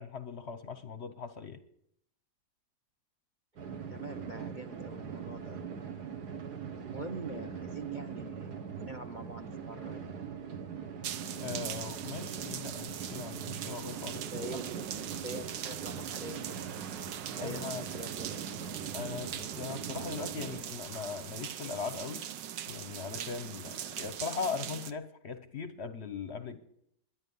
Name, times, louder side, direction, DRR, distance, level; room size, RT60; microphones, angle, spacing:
voice 1, 0.0-1.6 11.4-14.6 17.4-17.8 18.9-22.3 22.7-26.6, left 5 dB, 50° left, 11 dB, 0.9 m, -39 dB
sound 1, 3.6-20.6, right 6 dB, 65° right, 1.9 m, -42 dB
voice 2, 3.9-5.7 6.8-10.0 14.3-14.8 15.1-16.7 17.4-18.5, right 2 dB, 35° right, 7 dB, 0.8 m, -44 dB
sound 2, 11.0-24.9, right 10 dB, 90° right, 1.5 m, -41 dB
21.5 x 10.5 x 5.5 m, 0.73 s
omnidirectional pair, 1.9 m